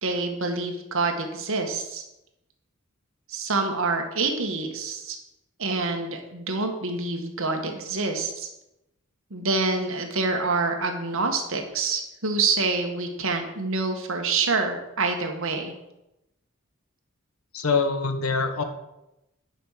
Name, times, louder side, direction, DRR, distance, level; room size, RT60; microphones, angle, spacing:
voice 1, 0.0-2.0 3.3-5.2 5.6-8.5 9.3-15.7, right 3 dB, 65° right, 4 dB, 1.6 m, -27 dB
voice 2, 17.5-18.6, left 4 dB, 85° left, 7 dB, 1.3 m, -24 dB
10.0 x 5.5 x 6.7 m, 0.91 s
head